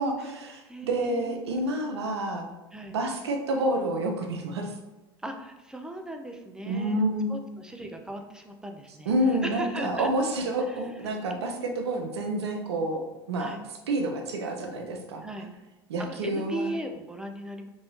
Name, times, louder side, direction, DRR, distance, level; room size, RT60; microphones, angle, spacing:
voice 1, 0.0-2.5 2.9-4.7 6.7-7.3 9.1-13.6 13.9-15.2 15.9-16.7, right 1 dB, 80° right, 3 dB, 0.4 m, -28 dB
voice 2, 0.7-1.6 2.7-3.0 5.2-10.1 10.7-10.8 11.3-11.8 13.4-13.6 15.2-15.5 16.0-17.7, right 1 dB, 5° right, 3 dB, 0.4 m, -38 dB
2.9 x 2.6 x 3.1 m, 1.1 s
hypercardioid pair, 75°, 14 cm